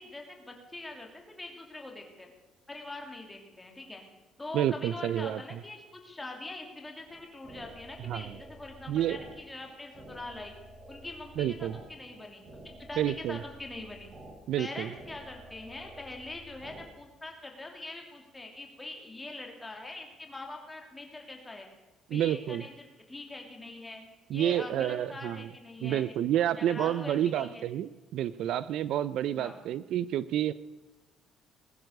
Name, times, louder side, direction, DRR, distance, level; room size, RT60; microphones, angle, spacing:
voice 1, 0.0-2.3 2.7-4.0 4.4-10.5 10.9-14.1 14.6-21.7 22.1-24.0 24.3-27.7 29.3-29.6, left 2 dB, 10° left, 2 dB, 2.7 m, -43 dB
voice 2, 4.5-5.4 8.1-8.3 8.9-9.2 11.4-11.8 13.0-13.4 14.5-14.9 22.1-22.6 24.3-25.5 25.8-30.5, right 11 dB, 55° right, 17 dB, 0.4 m, -29 dB
sound 1, 7.1-16.9, right 1 dB, 25° right, 3.9 m, -51 dB
20.0 x 11.0 x 6.6 m, 1.1 s
cardioid pair, 180°, 0 cm